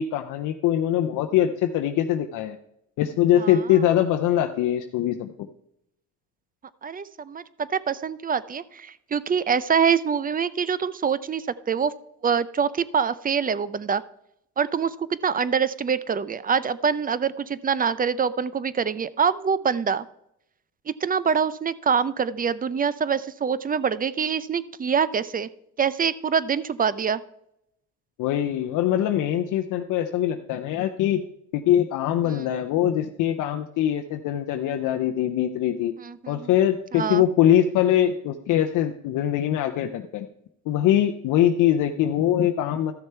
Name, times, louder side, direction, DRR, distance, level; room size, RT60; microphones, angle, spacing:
voice 1, 0.0-2.6 3.0-5.5 28.2-31.2 31.5-35.9 36.3-40.3 40.7-42.9, left 11 dB, 90° left, 5 dB, 0.6 m, -22 dB
voice 2, 6.8-11.9 12.2-14.0 14.6-20.1 20.9-25.5 25.8-27.2 32.2-32.5 36.0-36.5 36.9-37.2, right 6 dB, 30° right, 17 dB, 0.5 m, -25 dB
13.0 x 6.6 x 4.4 m, 0.78 s
cardioid pair, 90°, 30 cm